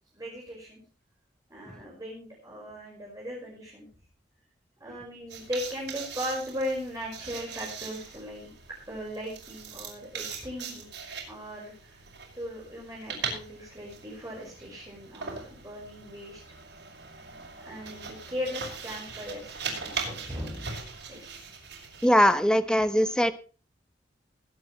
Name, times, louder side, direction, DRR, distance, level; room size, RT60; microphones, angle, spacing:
voice 1, 0.1-0.8 1.5-3.9 4.8-8.5 8.9-10.9 11.3-12.0 12.3-16.4 17.6-20.7 21.1-21.4, equal, 20° right, -3 dB, 5.3 m, -38 dB
sound 1, 5.3-22.4, right 5 dB, 90° right, 5.6 m, -40 dB
voice 2, 22.0-23.3, equal, 5° left, 10 dB, 1.0 m, -21 dB
21.0 x 9.2 x 3.2 m, 0.37 s
head